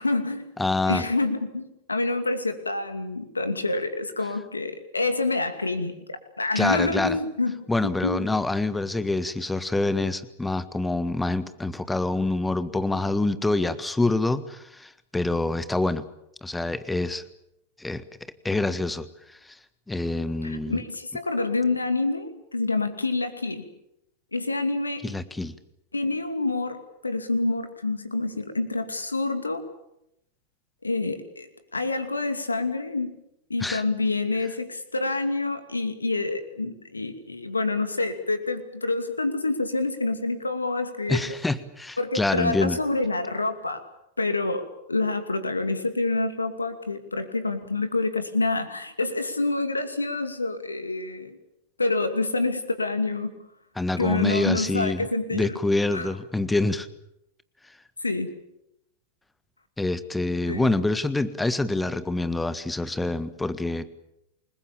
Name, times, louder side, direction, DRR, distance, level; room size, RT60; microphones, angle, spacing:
voice 1, 0.0-0.5 0.9-8.4 20.4-23.6 24.3-25.0 25.9-29.7 30.8-31.5 31.7-33.2 33.5-41.3 42.0-43.8 44.2-51.4 51.8-53.3 54.0-55.6 55.9-56.1 58.0-58.3 60.5-60.7, left 3 dB, 80° left, 9 dB, 2.5 m, -27 dB
voice 2, 0.6-1.0 6.5-7.2 7.7-16.0 16.4-17.2 17.8-18.0 18.4-19.6 19.9-20.8 25.0-25.5 33.6-33.8 41.1-42.8 53.8-56.9 59.8-63.8, left 2 dB, 5° left, 14 dB, 1.6 m, -26 dB
28.5 x 21.0 x 7.3 m, 0.82 s
figure-of-eight pair, 90°, 0 cm